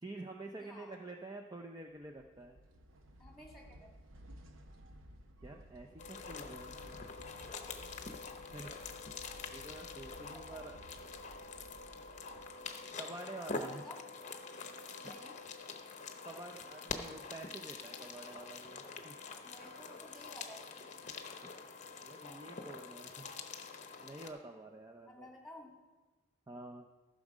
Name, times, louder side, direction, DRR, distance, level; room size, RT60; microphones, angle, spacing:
voice 1, 0.0-2.6 5.4-7.0 8.5-8.7 9.5-10.8 13.0-13.8 15.0-15.2 16.2-19.1 21.4-21.5 22.0-23.3 24.0-25.3 26.5-26.9, right 2 dB, 20° right, 2 dB, 0.5 m, -48 dB
voice 2, 0.6-1.0 3.2-3.9 7.3-7.9 8.5-8.9 10.2-10.7 13.4-14.1 15.0-15.4 19.4-20.9 25.1-25.7, left 1 dB, ahead, -1 dB, 2.1 m, -54 dB
sound 1, 1.9-12.9, equal, 80° right, 0.8 m, -56 dB
sound 2, 6.0-24.3, left 4 dB, 35° left, 0.8 m, -46 dB
14.5 x 6.3 x 5.0 m, 1.2 s
head